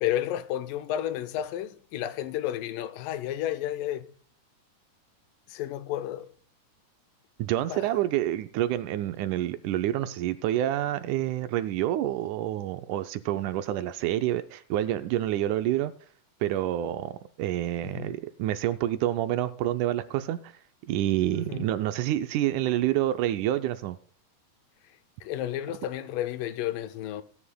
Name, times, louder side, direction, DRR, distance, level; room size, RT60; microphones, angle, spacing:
voice 1, 0.0-4.1 5.5-6.3 7.7-7.8 17.8-18.1 21.5-21.7 25.2-27.2, left 12 dB, 85° left, 2.3 m, -31 dB
voice 2, 7.4-15.9 16.4-20.5 20.9-24.0, right 13 dB, 80° right, 1.9 m, -28 dB
18.0 x 9.8 x 2.2 m
omnidirectional pair, 3.8 m